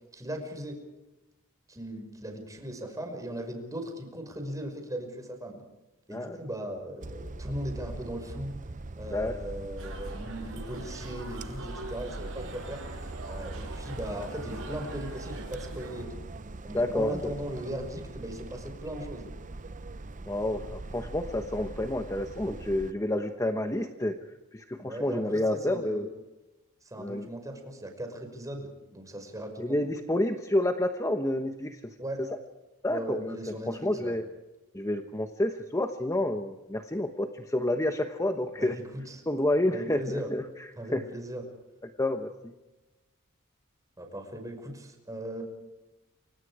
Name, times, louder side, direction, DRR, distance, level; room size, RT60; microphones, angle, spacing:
voice 1, 0.1-0.8 1.7-5.6 6.1-8.6 9.0-12.8 13.3-16.3 16.6-19.3 24.8-26.1 26.8-29.8 32.0-32.2 32.9-34.2 38.5-39.2 39.7-40.3 40.8-41.4 44.0-45.4, right 1 dB, 15° right, 4 dB, 5.6 m, -38 dB
sound 1, 7.0-22.9, right 2 dB, 35° right, 0.7 m, -41 dB
sound 2, 9.8-16.0, right 2 dB, 65° right, 7.2 m, -44 dB
voice 2, 16.7-17.3 20.3-24.2 24.5-26.1 27.0-27.3 29.6-31.9 32.8-33.4 33.7-34.2 34.7-38.8 39.3-40.4 40.9-41.0 42.0-42.3, left 1 dB, 15° left, 6 dB, 1.1 m, -29 dB
29.0 x 25.5 x 5.0 m, 1.0 s
head